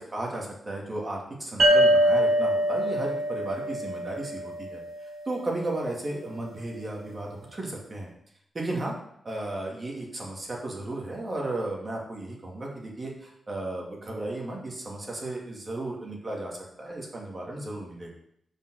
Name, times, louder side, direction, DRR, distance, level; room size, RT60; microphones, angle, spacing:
voice 1, 0.0-4.8 5.3-8.1 8.5-8.9 9.2-18.1, right 2 dB, 30° right, -2 dB, 2.3 m, -34 dB
sound 1, 1.6-5.0, equal, 55° right, 2.1 m, -23 dB
7.2 x 5.4 x 6.4 m, 0.71 s
wide cardioid pair, 125°, 0 cm